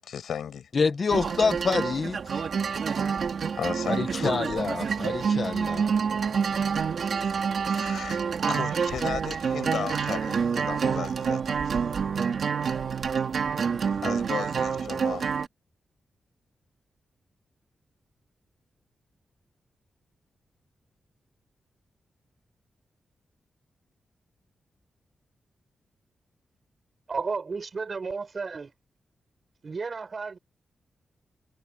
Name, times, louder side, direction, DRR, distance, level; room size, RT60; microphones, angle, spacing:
voice 1, 0.0-0.7 3.6-4.7 5.7-5.8 7.2-8.2 8.5-11.8 14.0-15.2, left 8 dB, 85° left, 7.6 m, -35 dB
voice 2, 0.7-2.4 3.9-5.8, left 4 dB, 40° left, 1.5 m, -27 dB
sound 1, 1.1-15.5, right 6 dB, 55° right, 3.3 m, -27 dB
voice 3, 27.1-28.7 29.6-30.4, right 4 dB, 35° right, 7.6 m, -33 dB
wide cardioid pair, 150°, 0 cm